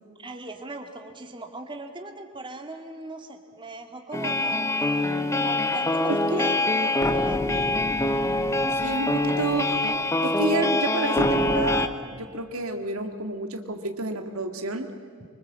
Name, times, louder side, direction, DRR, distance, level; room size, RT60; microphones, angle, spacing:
voice 1, 0.2-4.7 5.3-7.4, right 2 dB, 25° right, 4 dB, 2.2 m, -39 dB
sound 1, 4.1-11.9, left 2 dB, 15° left, 1.1 m, -24 dB
voice 2, 6.1-6.5 7.5-7.7 8.8-9.9 10.2-14.9, right 2 dB, 90° right, 6 dB, 2.2 m, -30 dB
25.0 x 24.5 x 7.6 m, 2.3 s
head